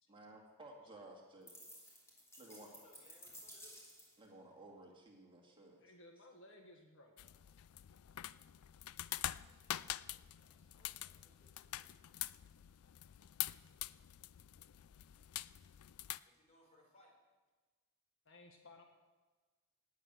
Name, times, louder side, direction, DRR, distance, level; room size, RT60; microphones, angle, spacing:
voice 1, 0.1-2.0 2.4-2.7 4.2-5.8, right 2 dB, 25° right, 0 dB, 2.3 m, -56 dB
sound 1, 1.5-4.3, equal, 15° left, 3.0 m, -56 dB
voice 2, 2.4-3.8 9.3-11.9 16.2-17.1, equal, 35° left, -1 dB, 4.4 m, -69 dB
voice 3, 5.8-7.2 18.2-18.8, left 2 dB, 60° left, 3 dB, 1.6 m, -59 dB
sound 2, 7.2-16.2, left 13 dB, 80° left, 0.4 m, -46 dB
17.5 x 9.4 x 6.3 m, 1.3 s
head